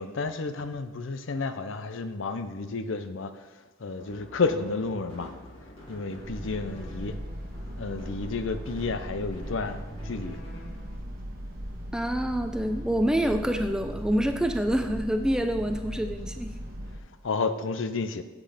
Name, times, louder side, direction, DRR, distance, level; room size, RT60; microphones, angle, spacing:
voice 1, 0.0-3.3 3.8-5.3 5.9-7.2 7.8-10.4 17.2-18.2, left 4 dB, 60° left, 10 dB, 0.5 m, -31 dB
sound 1, 3.9-11.0, equal, 25° left, 2.9 m, -47 dB
sound 2, 6.2-17.0, equal, 45° right, 1.2 m, -38 dB
voice 2, 11.9-16.6, equal, 5° right, 6 dB, 0.3 m, -27 dB
8.4 x 5.6 x 5.0 m, 1.2 s
head